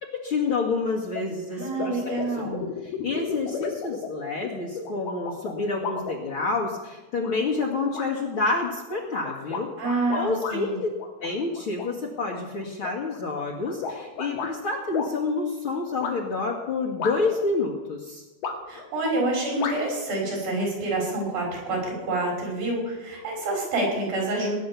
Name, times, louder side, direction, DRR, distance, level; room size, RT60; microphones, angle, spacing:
voice 1, 0.0-2.1 2.8-9.7 10.1-10.9 11.2-18.2, left 3 dB, 40° left, -3 dB, 2.2 m, -28 dB
sound 1, 1.1-1.2 1.6-6.7 7.2-7.7 7.9-8.1 8.6-10.6 11.0-11.9 12.3-14.5 14.9-15.1 16.0-16.1 17.0-17.5 18.4-18.9 19.6-19.8, left 6 dB, 80° left, 3.9 m, -34 dB
voice 2, 1.5-2.6 9.8-10.8 18.7-24.6, right 2 dB, 65° right, 0 dB, 7.4 m, -27 dB
19.5 x 10.5 x 7.1 m, 1.1 s
omnidirectional pair, 4.4 m